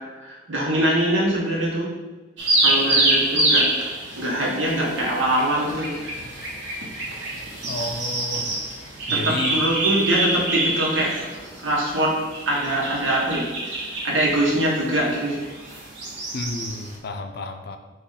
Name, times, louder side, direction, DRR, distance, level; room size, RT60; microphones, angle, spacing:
voice 1, 0.0-1.9 2.6-6.0 9.1-15.5, right 1 dB, 80° right, -3 dB, 1.2 m, -24 dB
sound 1, 2.4-16.9, right 2 dB, 65° right, 1.0 m, -26 dB
voice 2, 7.7-8.5 9.1-9.6 16.3-17.8, left 2 dB, 55° left, 6 dB, 0.4 m, -31 dB
4.3 x 3.0 x 3.8 m, 1.2 s
head